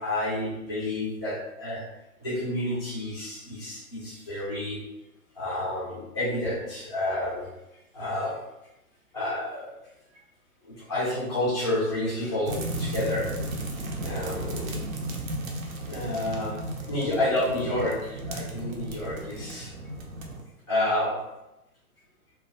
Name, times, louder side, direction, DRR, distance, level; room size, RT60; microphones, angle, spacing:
voice 1, 0.0-1.8 2.2-4.8 5.4-7.5 7.9-8.3 9.1-9.7 10.6-13.3 14.0-14.7 15.9-16.6 16.9-19.7 20.7-21.2, left 1 dB, 20° left, -8 dB, 0.3 m, -29 dB
sound 1, 12.5-20.4, right 1 dB, 65° right, 0.6 m, -34 dB
2.2 x 2.1 x 2.6 m, 0.91 s
figure-of-eight pair, 115°, 44 cm